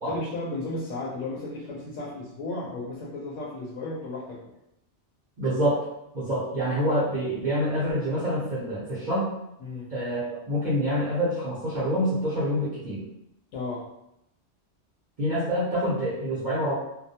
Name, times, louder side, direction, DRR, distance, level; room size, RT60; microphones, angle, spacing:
voice 1, 0.0-4.4 9.6-9.9 13.5-13.8, left 2 dB, 85° left, -5 dB, 0.9 m, -34 dB
voice 2, 5.4-5.8 6.1-9.3 9.9-13.0 15.2-16.7, equal, 45° right, -10 dB, 0.8 m, -26 dB
2.3 x 2.1 x 2.7 m, 0.82 s
omnidirectional pair, 1.2 m